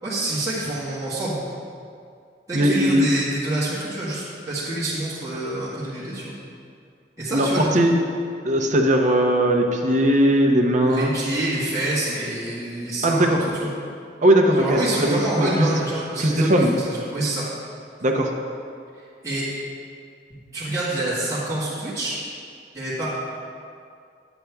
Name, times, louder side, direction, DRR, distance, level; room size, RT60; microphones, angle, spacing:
voice 1, 0.0-1.6 2.5-6.4 7.2-7.9 10.9-13.7 14.6-17.5 19.2-19.5 20.3-22.2 22.7-23.2, right 1 dB, 20° right, -11 dB, 1.7 m, -27 dB
voice 2, 2.5-3.1 7.3-7.9 8.4-11.1 13.0-13.4 14.2-15.7 16.2-16.7 18.0-18.3, right 1 dB, 45° right, 2 dB, 0.9 m, -19 dB
10.0 x 8.2 x 3.5 m, 2.3 s
head